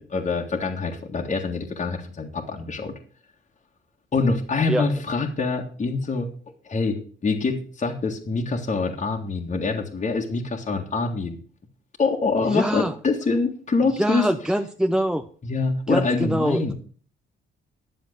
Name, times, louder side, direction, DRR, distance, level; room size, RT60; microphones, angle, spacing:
voice 1, 0.0-2.9 4.1-6.3 6.6-11.4 12.0-14.3 15.4-16.7, left 4 dB, 35° left, 0 dB, 1.9 m, -25 dB
voice 2, 12.5-12.9 14.0-15.2 15.9-16.7, equal, 5° right, 5 dB, 0.8 m, -24 dB
11.0 x 7.1 x 6.6 m, 0.43 s
cardioid pair, 90°, 20 cm